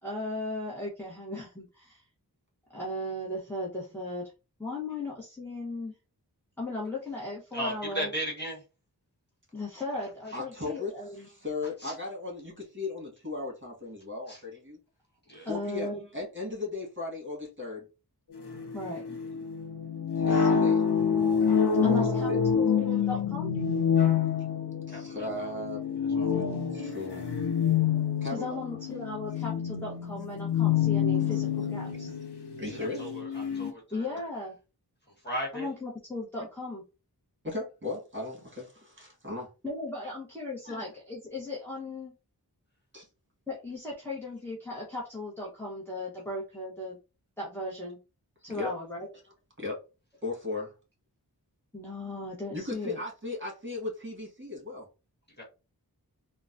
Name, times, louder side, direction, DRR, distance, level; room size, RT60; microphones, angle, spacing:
voice 1, 0.0-2.0 2.7-4.3 4.6-6.0 6.6-8.1 9.5-11.3 15.4-16.0 18.7-19.2 20.3-20.7 21.8-23.5 28.3-32.2 33.9-34.6 35.5-36.8 39.6-42.1 43.5-47.0 47.4-48.0 48.4-49.1 51.7-53.0, left 2 dB, 5° left, -5 dB, 1.0 m, -37 dB
voice 2, 7.5-8.6 15.3-15.5 24.9-25.0 26.2-26.3 33.0-33.1 33.5-33.8 35.2-35.7 55.4-55.5, equal, 25° left, -3 dB, 1.4 m, -33 dB
voice 3, 10.3-14.8 15.5-17.9 19.3-19.4 20.2-20.8 21.8-22.4 22.7-22.9 24.9-25.8 26.3-27.3 28.2-28.8 31.2-32.1 32.6-33.2 36.4-36.5 37.4-39.5 40.6-40.8 42.9-43.1 48.5-48.7 49.6-49.8 50.2-50.7 52.5-54.9, left 3 dB, 30° right, -2 dB, 1.7 m, -37 dB
sound 1, 18.4-33.7, left 7 dB, 85° left, 0.7 m, -27 dB
3.8 x 2.3 x 2.6 m, 0.30 s
wide cardioid pair, 45°, 38 cm